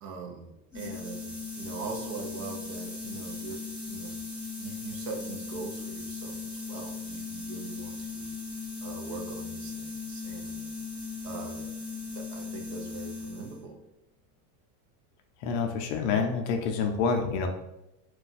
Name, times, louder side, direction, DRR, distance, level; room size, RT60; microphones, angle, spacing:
voice 1, 0.0-4.2 4.6-8.3 8.8-10.6 11.2-11.7 12.1-13.8, right 4 dB, 60° right, 2 dB, 0.7 m, -42 dB
sound 1, 0.7-13.6, left 4 dB, ahead, 1.1 m, -38 dB
voice 2, 15.4-17.5, left 5 dB, 50° left, 4 dB, 0.4 m, -27 dB
2.5 x 2.2 x 3.9 m, 0.91 s
supercardioid pair, 135°, 47 cm